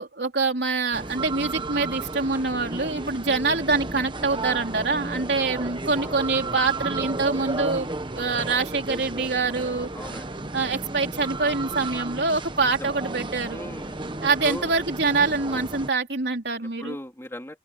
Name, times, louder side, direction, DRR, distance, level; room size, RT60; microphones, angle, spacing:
voice 1, 0.0-7.9 8.1-9.9 10.5-13.6 14.2-17.0, right 3 dB, 65° right, 3.5 m, -25 dB
sound 1, 0.9-15.9, right 2 dB, 25° right, 1.2 m, -33 dB
voice 2, 5.8-6.2 9.9-10.3 12.8-12.9 13.5-14.0 14.4-14.7 16.8-17.6, left 1 dB, 15° left, 2.9 m, -37 dB
open air
head